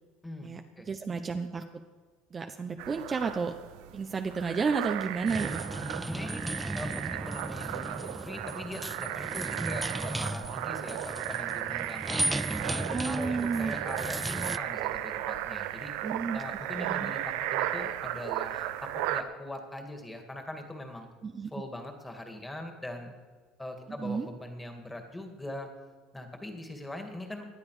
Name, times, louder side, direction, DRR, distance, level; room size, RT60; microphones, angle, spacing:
voice 1, 0.4-1.8 2.3-3.5 3.9-5.6 9.5-9.6 12.9-13.7 16.0-16.4 16.8-17.1 21.2-21.5 24.0-24.3, right 5 dB, 30° right, 6 dB, 0.8 m, -32 dB
sound 1, 2.8-19.2, right 13 dB, 75° right, 0.8 m, -35 dB
sound 2, 5.3-14.6, right 1 dB, 5° right, 0.4 m, -35 dB
voice 2, 5.7-6.5 6.7-12.2 12.7-15.9 16.3-21.1 21.5-23.1 23.6-25.7 26.1-27.5, left 1 dB, 10° left, 4 dB, 2.3 m, -41 dB
18.5 x 10.5 x 5.0 m, 1.4 s
supercardioid pair, 100°, 0 cm